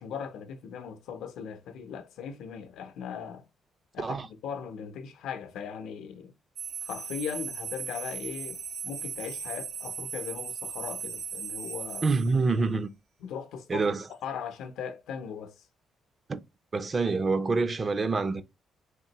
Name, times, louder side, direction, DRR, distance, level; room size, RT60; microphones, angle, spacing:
voice 1, 0.0-3.5 3.9-6.3 6.8-12.1 13.2-15.6, left 7 dB, 85° left, 0.6 m, -39 dB
sound 1, 6.6-12.3, right 7 dB, 75° right, 1.8 m, -37 dB
voice 2, 12.0-12.9 13.7-14.0 16.3-16.4 16.7-18.4, right 4 dB, 35° right, 0.5 m, -26 dB
3.6 x 2.6 x 2.9 m
cardioid pair, 90°, 0 cm